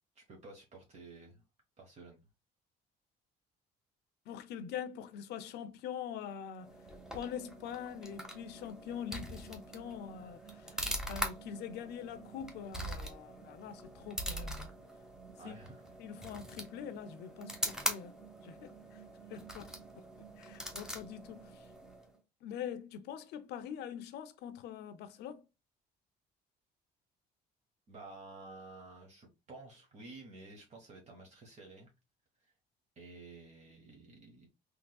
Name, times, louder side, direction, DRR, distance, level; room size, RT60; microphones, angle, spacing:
voice 1, 0.1-1.4 1.8-2.2 15.4-15.8 16.2-16.3 27.9-31.9 32.4-32.5 33.0-34.5, right 3 dB, 40° right, 1.2 m, -52 dB
voice 2, 4.3-6.7 7.1-14.7 15.4-15.6 16.0-18.2 18.4-19.0 19.3-20.1 20.4-21.7 22.4-25.4, left 8 dB, 75° left, 0.6 m, -44 dB
sound 1, 6.6-22.2, equal, 5° right, 0.9 m, -43 dB
3.6 x 3.1 x 2.3 m
cardioid pair, 110°, 17 cm